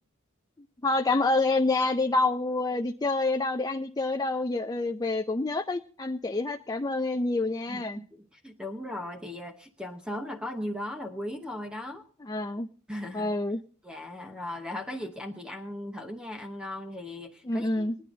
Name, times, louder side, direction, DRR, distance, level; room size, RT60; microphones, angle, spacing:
voice 1, 0.8-8.0 12.3-12.7 13.1-13.6 17.5-17.9, left 2 dB, 20° left, 6 dB, 0.5 m, -27 dB
voice 2, 7.7-12.1 12.9-13.3 13.8-17.9, left 1 dB, 5° right, 3 dB, 0.9 m, -37 dB
19.5 x 10.0 x 3.9 m, 0.43 s
head